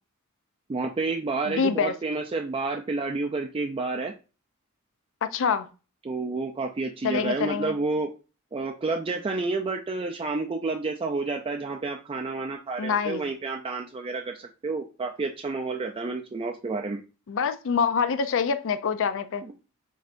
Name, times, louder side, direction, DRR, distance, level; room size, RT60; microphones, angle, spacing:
voice 1, 0.7-4.1 6.0-8.1 8.5-17.0 19.4-19.5, right 3 dB, 25° right, 0.4 m, -30 dB
voice 2, 1.5-2.0 5.2-5.7 7.0-7.7 12.8-13.2 17.3-19.4, left 6 dB, 65° left, 0.4 m, -26 dB
6.2 x 2.7 x 2.5 m
head